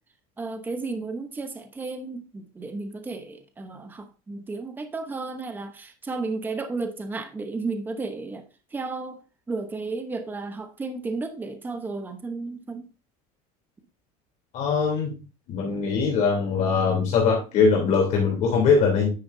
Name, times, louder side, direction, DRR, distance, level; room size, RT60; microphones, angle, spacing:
voice 1, 0.4-9.2 9.5-12.9, right 3 dB, 10° right, 0.9 m, -33 dB
voice 2, 14.5-15.1 15.5-19.1, left 5 dB, 45° left, 3.4 m, -21 dB
10.0 x 8.6 x 2.7 m
cardioid pair, 155°, 18 cm